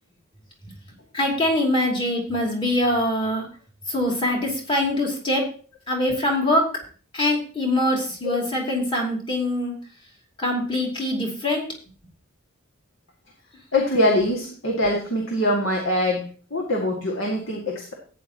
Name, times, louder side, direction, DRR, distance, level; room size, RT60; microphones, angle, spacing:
voice 1, 1.1-3.5 3.9-5.5 5.9-6.7 7.1-9.8 10.4-11.7, left 1 dB, 25° left, -1 dB, 2.7 m, -23 dB
voice 2, 13.7-17.9, left 1 dB, 65° left, -1 dB, 2.1 m, -23 dB
14.0 x 9.4 x 3.0 m, 0.40 s
head